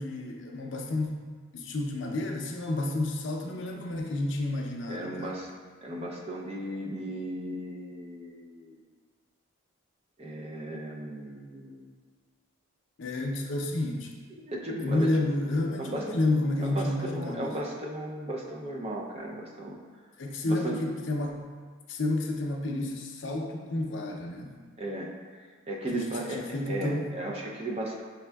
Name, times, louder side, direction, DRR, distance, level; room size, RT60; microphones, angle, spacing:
voice 1, 0.0-5.3 13.0-14.1 14.8-17.5 20.2-21.5 21.9-24.6 25.9-27.1, left 2 dB, 60° left, 1 dB, 0.5 m, -30 dB
voice 2, 4.9-5.5 5.8-8.8 10.2-11.9 14.5-15.1 15.8-16.1 16.6-19.8 20.4-20.8 24.8-25.1 25.7-28.0, right 1 dB, 30° right, -2 dB, 0.4 m, -35 dB
5.9 x 3.5 x 2.3 m, 1.5 s
head